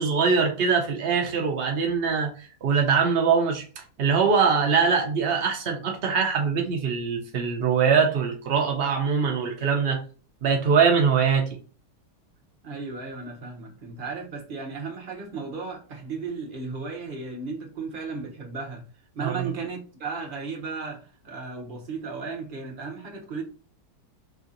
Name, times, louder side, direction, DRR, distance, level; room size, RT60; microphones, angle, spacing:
voice 1, 0.0-10.0 10.4-11.5 19.2-19.4, right 5 dB, 85° right, 0.5 m, -23 dB
voice 2, 12.6-18.8 19.1-23.4, right 4 dB, 45° right, 0.8 m, -35 dB
3.2 x 2.6 x 3.8 m
omnidirectional pair, 1.8 m